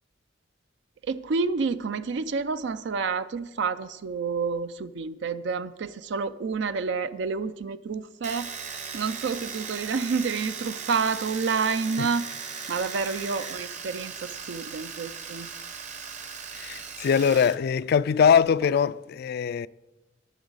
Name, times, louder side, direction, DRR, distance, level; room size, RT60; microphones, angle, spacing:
voice 1, 1.1-8.5 8.9-12.3 12.7-15.5, right 5 dB, 65° right, 0.4 m, -29 dB
Domestic sounds home sounds, 8.2-17.6 17.8-18.7, right 6 dB, 40° right, 0.9 m, -38 dB
voice 2, 16.5-19.7, left 7 dB, 55° left, 0.3 m, -22 dB
20.0 x 7.0 x 4.0 m
head